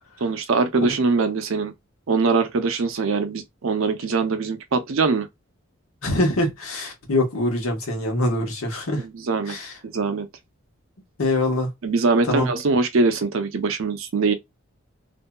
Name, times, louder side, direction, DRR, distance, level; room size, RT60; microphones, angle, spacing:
voice 1, 0.2-1.7 2.1-5.3 9.0-9.6 9.8-10.3 11.8-14.3, right 4 dB, 75° right, 0.5 m, -22 dB
voice 2, 6.0-9.0 9.5-9.7 11.2-11.7 12.2-12.5, left 1 dB, 90° left, 1.1 m, -24 dB
2.6 x 2.6 x 2.2 m
head